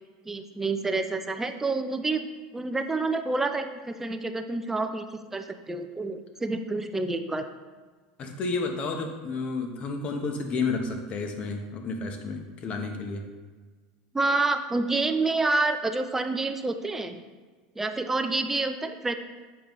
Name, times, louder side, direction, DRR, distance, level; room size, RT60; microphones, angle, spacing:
voice 1, 0.3-2.3 2.5-7.5 14.1-17.2 17.8-19.1, right 3 dB, 10° right, 8 dB, 0.5 m, -28 dB
voice 2, 8.2-13.2, left 4 dB, 40° left, 4 dB, 0.9 m, -31 dB
7.3 x 5.1 x 3.1 m, 1.4 s
supercardioid pair, 120°, 3 cm